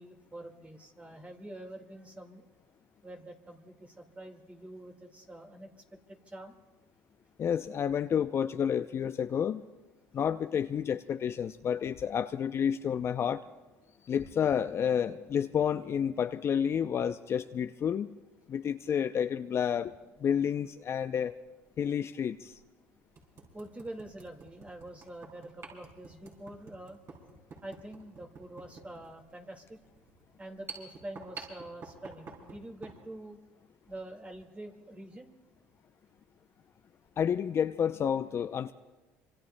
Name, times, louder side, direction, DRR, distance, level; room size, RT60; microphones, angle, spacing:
voice 1, 0.0-2.5 3.0-5.7 6.1-6.5 23.5-27.0 27.6-29.8 30.4-33.4 33.9-35.3, right 1 dB, 20° right, 2 dB, 1.9 m, -46 dB
voice 2, 7.4-9.6 10.1-13.4 14.0-18.1 18.5-19.9 20.2-21.4 21.8-22.6 37.2-38.7, left 8 dB, 40° left, 10 dB, 0.5 m, -30 dB
sound 1, 20.2-20.4 21.8-21.9 22.5-22.6 23.1-33.0, right 4 dB, 45° right, 5.7 m, -49 dB
26.0 x 25.0 x 2.2 m, 1.2 s
supercardioid pair, 85°, 6 cm